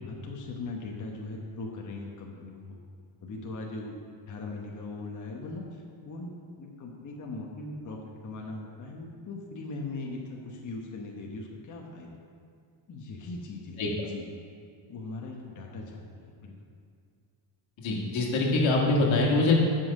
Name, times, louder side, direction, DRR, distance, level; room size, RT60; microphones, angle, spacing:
voice 1, 0.0-2.8 3.2-4.0 4.3-6.3 6.6-12.2 12.9-14.3 14.9-16.5, left 3 dB, 40° left, -1 dB, 1.1 m, -39 dB
voice 2, 17.8-19.5, left 2 dB, 75° left, -1 dB, 1.8 m, -24 dB
7.7 x 5.8 x 6.5 m, 2.3 s
cardioid pair, 115°, 46 cm